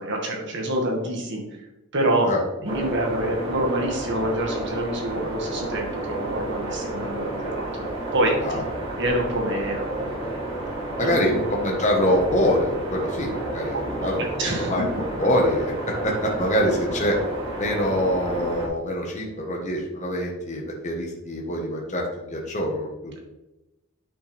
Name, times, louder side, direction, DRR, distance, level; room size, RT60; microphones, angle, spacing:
voice 1, 0.0-1.4 1.9-2.3 2.6-7.8 8.1-8.7 9.0-10.0 11.0-11.4 13.9-14.7, right 1 dB, 55° right, 0 dB, 1.8 m, -26 dB
sound 1, 2.6-18.7, right 2 dB, 25° right, 2.8 m, -31 dB
voice 2, 11.0-14.9 15.2-17.2 17.6-23.2, equal, 35° left, -1 dB, 1.3 m, -25 dB
9.5 x 5.8 x 3.4 m, 0.98 s
head